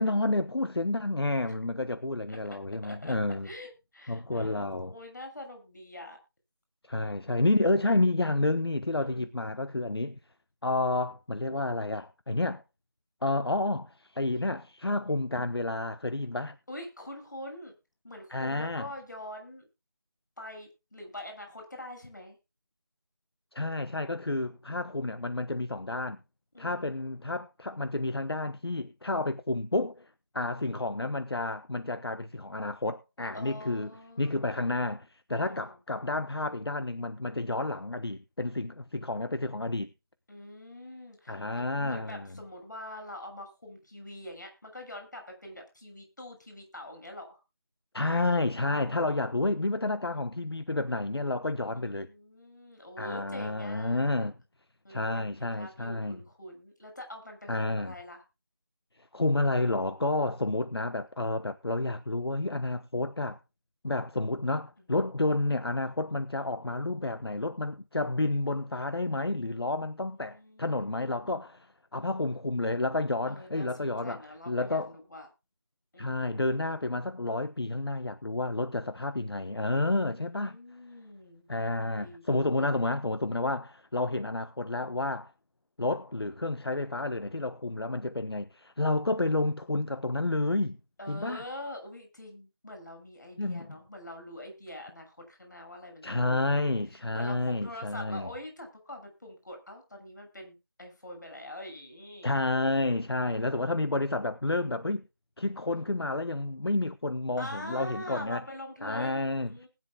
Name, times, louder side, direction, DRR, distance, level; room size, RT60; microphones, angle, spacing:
voice 1, 0.0-3.5 4.1-4.9 6.9-10.2 10.6-12.6 13.2-16.6 18.3-18.9 23.5-26.2 26.6-33.9 34.2-39.9 41.3-42.3 47.9-52.1 53.0-54.3 54.9-56.2 57.5-57.9 59.1-63.4 63.8-74.9 76.0-80.6 81.5-85.3 85.8-90.8 91.1-91.4 93.4-93.8 96.0-98.3 102.2-105.0 105.4-108.4 108.8-109.7, left 2 dB, 75° left, 1.2 m, -30 dB
voice 2, 2.8-3.2 3.4-6.2 6.9-7.5 9.0-9.2 16.7-17.7 18.0-19.6 20.4-22.4 26.5-26.9 33.3-34.5 35.4-35.7 40.3-47.4 48.6-49.5 51.7-54.3 54.8-58.2 64.8-64.9 69.7-71.4 73.3-75.3 75.9-76.3 80.0-81.5 81.8-82.8 89.1-89.2 91.0-96.4 97.1-102.3 103.2-103.7 107.4-109.7, left 1 dB, 50° left, 6.7 m, -45 dB
20.0 x 10.5 x 2.4 m
figure-of-eight pair, 180°, 13 cm